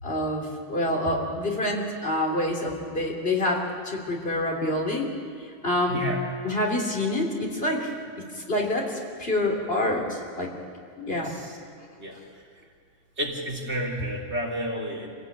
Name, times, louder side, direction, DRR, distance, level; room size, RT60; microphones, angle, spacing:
voice 1, 0.0-5.1 5.4-6.0 6.4-10.5 11.0-11.4, left 1 dB, 50° left, -1 dB, 3.4 m, -27 dB
voice 2, 5.9-6.2 11.1-11.5 12.0-12.2 13.2-15.1, equal, 60° right, -2 dB, 3.6 m, -31 dB
26.5 x 16.5 x 8.9 m, 2.2 s
omnidirectional pair, 1.3 m